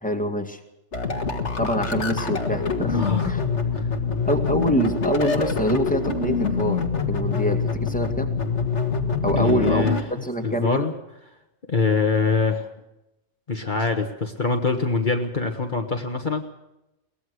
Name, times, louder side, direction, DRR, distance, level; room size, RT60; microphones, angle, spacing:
voice 1, 0.0-0.6 1.6-3.4 4.3-8.3 9.2-9.9 10.2-10.9, equal, 5° left, 4 dB, 2.2 m, -25 dB
sound 1, 0.9-10.0, left 5 dB, 75° left, 2.2 m, -25 dB
voice 2, 2.9-3.3 3.8-3.9 9.4-10.9 11.7-12.7 13.5-16.4, left 4 dB, 45° left, 3 dB, 1.6 m, -24 dB
23.0 x 19.0 x 6.4 m, 0.92 s
omnidirectional pair, 1.2 m